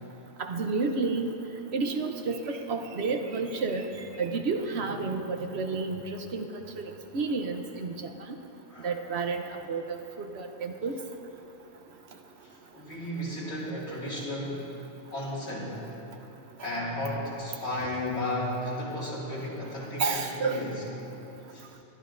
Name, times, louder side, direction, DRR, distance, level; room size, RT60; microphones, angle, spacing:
voice 1, 0.4-1.3 1.7-3.9 4.2-6.0 6.3-6.8 7.1-8.1 8.8-9.4 9.7-10.9 20.0-20.7, right 4 dB, 70° right, 5 dB, 1.1 m, -30 dB
voice 2, 12.7-14.7 15.1-15.8 16.6-20.8 21.5-21.6, left 1 dB, 70° left, -6 dB, 2.7 m, -34 dB
22.5 x 11.5 x 2.6 m, 2.9 s
omnidirectional pair, 1.2 m